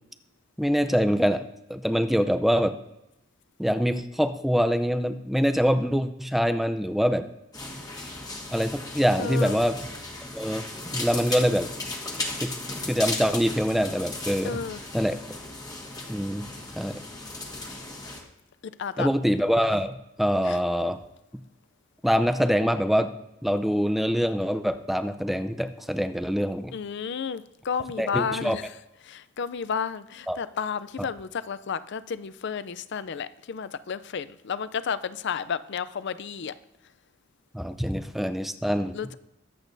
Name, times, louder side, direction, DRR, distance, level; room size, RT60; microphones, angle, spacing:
voice 1, 0.6-1.4 1.7-2.8 3.6-7.3 8.5-9.8 10.3-10.7 10.9-11.7 12.4-12.5 12.9-14.6 14.9-15.2 16.1-16.5 16.8-17.0 19.0-21.0 22.0-23.1 23.4-26.7 28.0-28.6 30.3-30.4 31.0-31.1 37.5-39.1, equal, ahead, 0.5 m, -24 dB
sound 1, 7.5-18.2, left 2 dB, 20° left, 1.5 m, -36 dB
voice 2, 9.2-9.6 14.4-14.8 18.6-19.1 20.4-20.6 26.7-28.6 29.0-36.5 38.9-39.1, left 6 dB, 60° left, 0.4 m, -32 dB
22.5 x 8.3 x 2.7 m
head